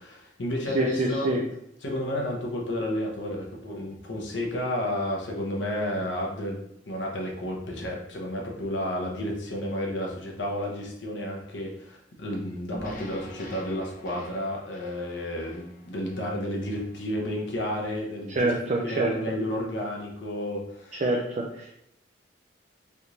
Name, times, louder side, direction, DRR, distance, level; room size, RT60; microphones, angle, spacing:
voice 1, 0.0-1.3 1.8-6.6 6.9-18.5 18.8-21.0, left 1 dB, 75° left, -1 dB, 0.8 m, -31 dB
voice 2, 0.7-1.4 18.3-19.1 20.9-21.7, right 2 dB, 40° right, 0 dB, 0.4 m, -26 dB
sound 1, 12.7-17.0, equal, 45° left, 0.6 m, -45 dB
3.4 x 2.5 x 2.9 m, 0.78 s
head